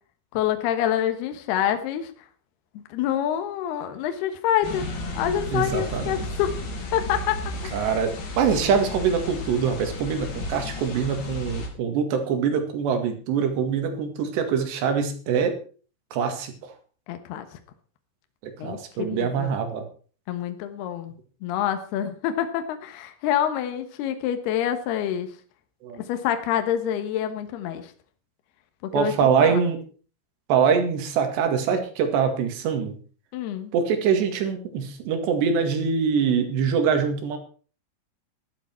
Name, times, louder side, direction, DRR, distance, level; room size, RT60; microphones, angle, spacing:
voice 1, 0.3-2.1 2.7-4.9 5.1-6.5 6.9-7.9 17.1-17.5 18.6-19.5 20.3-21.1 21.4-25.3 26.0-27.9 28.8-29.1 29.4-29.6 33.3-33.7, left 10 dB, 70° left, 7 dB, 3.0 m, -27 dB
sound 1, 4.6-11.7, left 2 dB, 50° left, 4.2 m, -33 dB
voice 2, 5.5-6.3 7.7-15.6 16.1-16.5 18.4-19.8 25.8-26.0 28.9-29.8 30.5-33.0 33.7-37.4, right 6 dB, 65° right, 6 dB, 4.0 m, -24 dB
14.0 x 12.0 x 4.5 m, 0.39 s
omnidirectional pair, 5.4 m